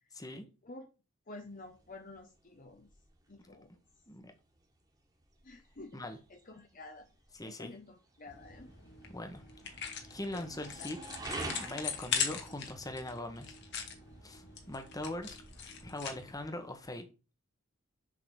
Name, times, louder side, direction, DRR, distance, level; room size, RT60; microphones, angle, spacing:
voice 1, 0.1-0.5 4.1-4.3 5.9-6.2 7.4-7.7 9.1-9.8 10.1-11.0 11.6-13.5 14.2-17.1, left 1 dB, 15° left, 6 dB, 1.3 m, -41 dB
voice 2, 1.3-2.9 3.3-3.8 5.4-6.0 6.3-7.1 7.4-8.8 10.3-10.9, left 2 dB, 40° left, 5 dB, 0.9 m, -50 dB
sound 1, 1.4-16.9, right 2 dB, 20° right, 1.7 m, -50 dB
sound 2, 8.3-16.5, left 7 dB, 55° left, 1.7 m, -41 dB
7.3 x 3.9 x 6.6 m, 0.31 s
head